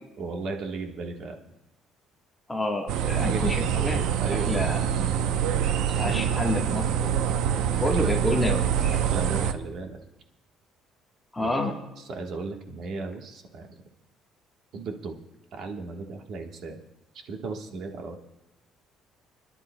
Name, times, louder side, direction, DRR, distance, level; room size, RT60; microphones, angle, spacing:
voice 1, 0.2-1.4 3.2-3.4 4.2-4.7 6.0-6.4 8.0-8.3 8.9-10.0 11.4-11.5 12.0-13.7 14.7-15.2 15.5-16.8 17.2-18.2, right 4 dB, 50° right, 3 dB, 1.3 m, -35 dB
voice 2, 2.5-4.0 4.5-5.1 5.9-7.3 7.8-9.0 11.3-11.7, left 1 dB, 10° left, 0 dB, 1.3 m, -29 dB
sound 1, 2.9-9.5, right 9 dB, 85° right, 0.6 m, -25 dB
27.5 x 11.0 x 2.2 m, 0.96 s
cardioid pair, 175°, 0 cm